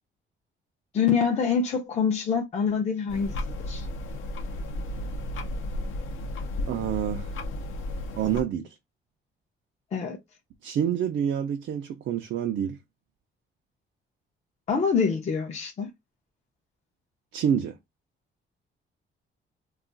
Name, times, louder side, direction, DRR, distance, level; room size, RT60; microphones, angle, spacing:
voice 1, 0.9-3.3 3.6-3.9 9.9-10.2 14.7-15.9, left 6 dB, 35° left, 0.5 m, -25 dB
sound 1, 3.1-8.4, left 1 dB, 80° left, 0.6 m, -33 dB
voice 2, 6.7-7.3 8.2-8.8 10.6-12.8 17.3-17.8, right 9 dB, 65° right, 0.4 m, -27 dB
2.3 x 2.3 x 3.8 m
cardioid pair, 145°, 20 cm